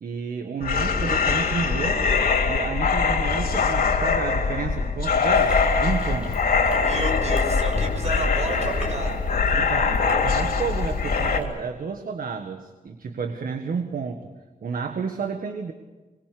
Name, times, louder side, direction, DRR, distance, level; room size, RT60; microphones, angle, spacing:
voice 1, 0.0-2.1 2.4-6.5 9.5-14.3 14.6-15.7, right 5 dB, 75° right, 6 dB, 1.7 m, -31 dB
sound 1, 0.6-11.4, left 5 dB, 80° left, 3.2 m, -22 dB
Chewing mastication, 5.3-11.4, right 1 dB, 10° right, 6.8 m, -36 dB
voice 2, 6.7-9.2, right 2 dB, 50° right, 4 dB, 5.8 m, -31 dB
26.0 x 22.0 x 6.9 m, 1.3 s
wide cardioid pair, 155°, 15 cm